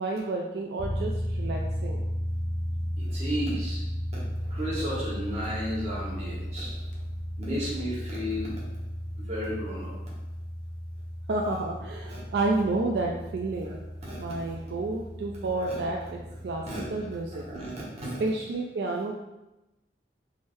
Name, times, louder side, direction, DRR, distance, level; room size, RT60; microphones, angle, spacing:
voice 1, 0.0-2.0 11.3-13.8 14.2-16.6 16.9-17.4 18.2-19.2, right 2 dB, 65° right, 0 dB, 0.3 m, -30 dB
sound 1, 0.8-17.5, equal, 45° left, 0.7 m, -35 dB
voice 2, 3.0-3.8 4.1-6.8 7.4-8.6 9.2-9.9 12.1-12.2 13.7-14.5 15.6-15.8 16.6-17.1 17.5-18.2, equal, 40° right, -7 dB, 1.2 m, -34 dB
3.6 x 3.3 x 2.6 m, 0.99 s
head